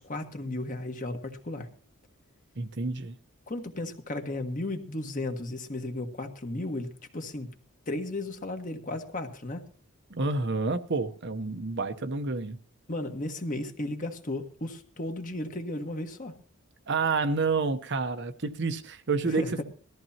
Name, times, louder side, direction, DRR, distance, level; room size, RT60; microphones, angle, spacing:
voice 1, 0.0-1.7 3.5-7.5 7.9-9.6 12.9-16.3 19.2-19.6, left 2 dB, 40° left, 1.5 m, -34 dB
voice 2, 2.6-3.1 10.1-12.6 16.9-19.6, right 4 dB, 55° right, 0.9 m, -29 dB
19.5 x 14.0 x 2.9 m
head